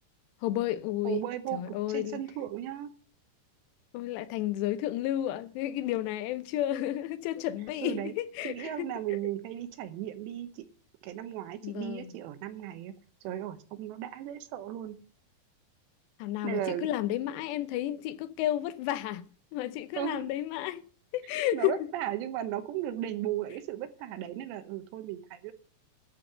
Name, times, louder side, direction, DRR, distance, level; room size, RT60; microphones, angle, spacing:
voice 1, 0.4-1.2 1.5-2.2 3.9-8.7 11.6-12.1 16.2-19.3 19.5-20.8 21.1-21.8, left 13 dB, 90° left, 2.9 m, -32 dB
voice 2, 1.0-2.9 7.8-8.1 8.4-10.6 11.0-12.9 13.2-15.0 16.4-16.9 20.0-20.3 21.5-25.5, right 12 dB, 90° right, 3.3 m, -36 dB
12.0 x 5.5 x 7.8 m
omnidirectional pair, 4.8 m